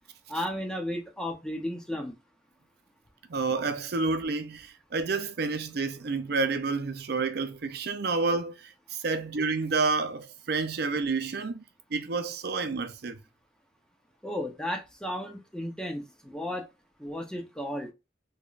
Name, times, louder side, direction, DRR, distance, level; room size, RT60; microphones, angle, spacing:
voice 1, 0.3-2.1 14.2-16.7 17.0-17.9, left 1 dB, 5° left, 0.7 m, -34 dB
voice 2, 3.3-11.6 11.9-13.2, right 4 dB, 60° right, 0.5 m, -29 dB
3.7 x 3.1 x 2.4 m
head